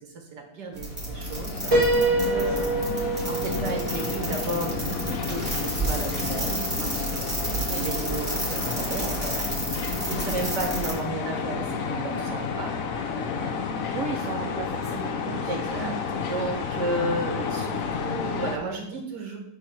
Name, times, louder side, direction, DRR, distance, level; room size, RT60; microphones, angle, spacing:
voice 1, 0.0-7.4 7.7-9.5 9.8-14.0 15.5-19.4, right 2 dB, 75° right, 1 dB, 2.0 m, -34 dB
sound 1, 0.8-18.6, left 6 dB, 60° left, 1.0 m, -31 dB
sound 2, 0.8-10.9, right 2 dB, 15° right, 1.8 m, -32 dB
Piano, 1.7-5.5, right 2 dB, 45° right, 2.7 m, -26 dB
voice 2, 2.2-2.6 7.3-7.8 10.0-10.5 13.9-15.5 15.8-16.0, right 4 dB, 60° right, 1 dB, 0.9 m, -36 dB
7.9 x 3.1 x 5.8 m, 0.79 s
omnidirectional pair, 1.8 m